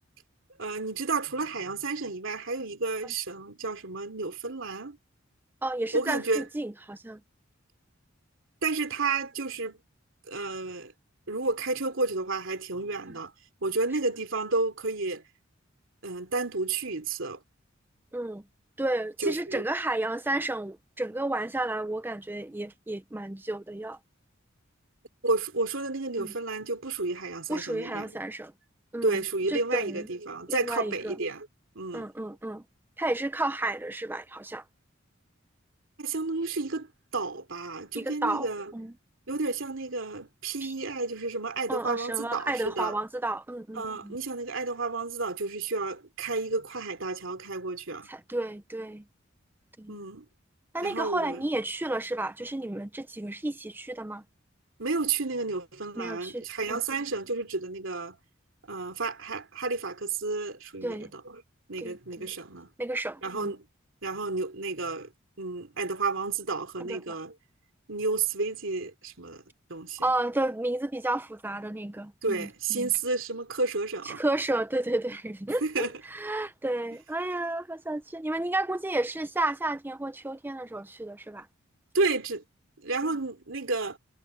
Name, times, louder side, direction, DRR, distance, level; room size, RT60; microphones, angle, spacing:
voice 1, 0.6-5.0 5.9-6.5 8.6-9.8 10.3-10.9 11.3-13.3 13.6-15.2 16.0-17.4 19.2-19.6 25.2-28.2 29.0-31.5 31.7-32.1 36.0-36.9 37.1-38.7 39.3-42.9 43.7-48.1 49.9-50.2 50.8-51.5 54.8-58.2 58.7-61.4 61.7-62.7 63.2-63.6 64.0-65.1 65.4-67.3 67.9-69.4 69.7-70.0 72.2-74.2 75.6-75.9 81.9-82.4 82.8-84.0, right 3 dB, 70° right, 3.2 m, -31 dB
voice 2, 5.6-7.2 18.1-18.4 18.8-24.0 26.2-26.3 27.5-28.5 28.9-29.2 29.5-30.1 30.5-31.2 31.9-32.6 33.0-34.6 37.9-38.5 38.7-38.9 40.6-40.7 41.7-44.2 48.1-49.0 49.8-50.0 50.7-54.2 56.0-56.8 60.8-61.1 61.8-62.3 62.8-63.5 66.8-67.2 70.0-72.9 74.0-81.5, right 2 dB, 10° right, 0.5 m, -32 dB
head